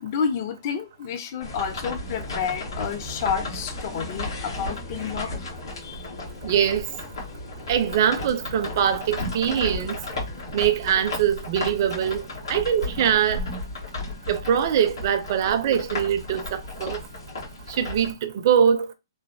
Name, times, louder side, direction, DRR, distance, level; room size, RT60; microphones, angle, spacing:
voice 1, 0.0-5.3 5.8-6.1, left 6 dB, 40° left, 0.4 m, -30 dB
sound 1, 1.4-18.1, left 2 dB, 85° left, 1.4 m, -34 dB
Boat Water vehicle / Engine, 1.7-10.6, left 1 dB, 55° left, 1.1 m, -47 dB
voice 2, 6.4-6.8 7.7-9.9 10.5-12.2 12.5-13.4 14.3-17.0 17.8-18.9, right 8 dB, 45° right, 0.4 m, -22 dB
3.1 x 2.1 x 2.5 m
hypercardioid pair, 150°, 2 cm